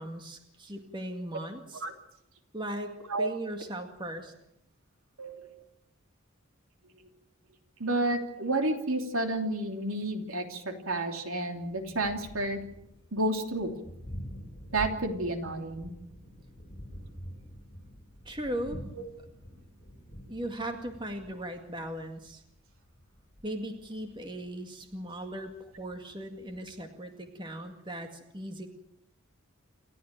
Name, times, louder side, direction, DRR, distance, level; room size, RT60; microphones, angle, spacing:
voice 1, 0.0-1.8 2.5-4.3 18.3-18.8 20.3-22.4 23.4-28.7, right 1 dB, 20° right, 5 dB, 2.1 m, -38 dB
voice 2, 5.2-5.5 7.8-12.6 13.1-13.7 14.7-15.9, right 2 dB, 80° right, 5 dB, 3.0 m, -30 dB
Thunder, 11.5-26.8, equal, 30° left, 6.4 m, -47 dB
28.5 x 13.0 x 9.0 m, 0.83 s
head